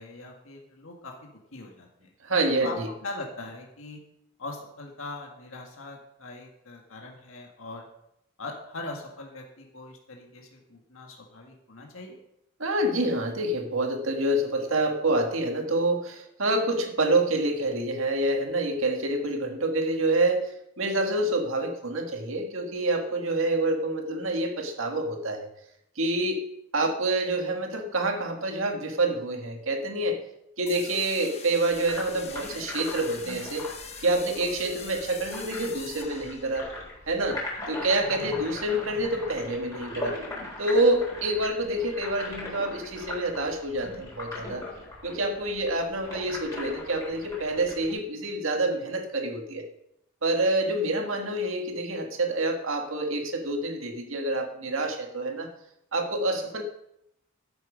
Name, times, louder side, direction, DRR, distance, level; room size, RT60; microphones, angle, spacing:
voice 1, 0.0-2.1 2.6-4.0 4.4-7.9 8.4-12.2 45.3-45.5 56.3-56.4, left 2 dB, 75° left, 1 dB, 1.8 m, -41 dB
voice 2, 2.2-2.9 12.6-25.5 26.0-26.5 26.7-30.2 30.6-33.6 34.0-36.7 37.1-37.4 37.7-40.2 40.6-44.6 45.0-49.7 50.2-55.5 55.9-56.6, right 2 dB, 75° right, 3 dB, 1.8 m, -27 dB
sound 1, 30.7-36.8, left 6 dB, 30° left, 1.0 m, -43 dB
sound 2, 31.7-47.9, left 2 dB, 15° left, 4.1 m, -40 dB
13.0 x 7.5 x 5.1 m, 0.79 s
head